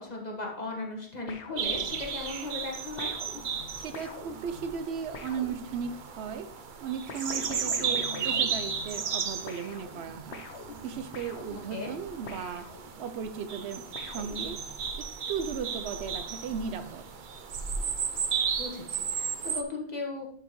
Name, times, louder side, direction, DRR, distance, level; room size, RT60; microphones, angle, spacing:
voice 1, 0.0-3.1 11.7-11.9 18.6-20.3, left 3 dB, 40° left, -1 dB, 1.6 m, -37 dB
sound 1, 1.3-2.3 3.0-6.1 7.1-9.2 9.5-13.2 13.9-14.9, left 3 dB, 80° left, 1.1 m, -44 dB
sound 2, 1.6-19.6, right 6 dB, 55° right, 0.7 m, -35 dB
voice 2, 3.8-6.5 6.8-10.4 10.8-12.7 13.0-14.6 15.0-17.1, right 6 dB, 80° right, 10 dB, 0.9 m, -36 dB
11.0 x 4.9 x 3.0 m, 0.64 s
omnidirectional pair, 1.1 m